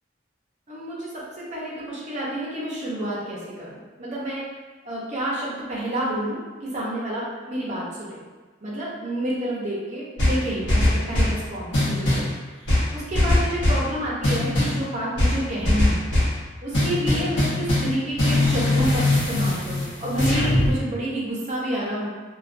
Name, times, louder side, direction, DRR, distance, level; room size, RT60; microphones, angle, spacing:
voice 1, 0.7-1.1 1.4-4.4 4.8-8.3 8.6-12.3 12.6-16.0 16.6-22.1, right 1 dB, 40° right, -6 dB, 0.6 m, -29 dB
sound 1, 10.2-11.4 11.7-12.3 12.7-13.9 14.2-14.8 15.2-16.4 16.7-17.9 18.2-20.7, left 1 dB, 70° left, 0.8 m, -21 dB
2.3 x 2.2 x 2.4 m, 1.3 s
head